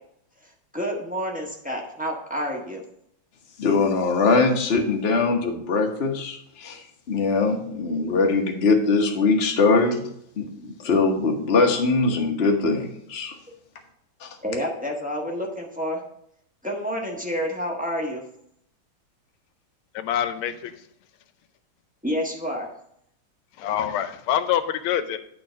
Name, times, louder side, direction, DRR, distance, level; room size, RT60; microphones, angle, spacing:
voice 1, 0.4-2.8 14.4-16.0 16.6-18.2 22.0-22.7, equal, 5° right, -1 dB, 0.8 m, -29 dB
voice 2, 3.6-6.8 7.1-10.1 10.4-13.3 14.2-14.4, left 3 dB, 40° left, 2 dB, 1.0 m, -22 dB
voice 3, 19.9-20.8 23.6-25.2, left 10 dB, 85° left, 12 dB, 1.5 m, -25 dB
8.9 x 3.8 x 6.3 m, 0.72 s
omnidirectional pair, 2.3 m